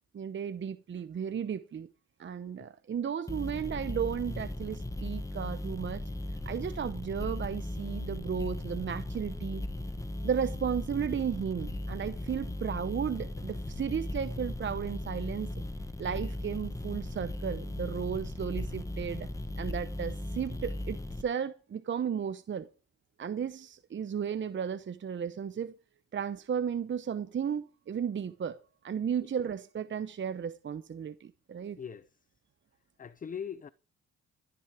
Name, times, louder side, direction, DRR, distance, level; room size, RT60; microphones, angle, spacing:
voice 1, 0.1-1.9 2.2-6.0 6.5-9.6 10.2-15.5 16.0-19.3 19.6-22.7 23.2-25.7 26.1-28.6 28.8-31.8, right 7 dB, 40° right, 0.9 m, -34 dB
sound 1, 3.3-21.2, left 1 dB, 10° left, 1.4 m, -37 dB
voice 2, 31.8-32.1 33.0-33.7, left 7 dB, 25° left, 0.6 m, -40 dB
14.0 x 9.9 x 4.9 m
cardioid pair, 90°, 30 cm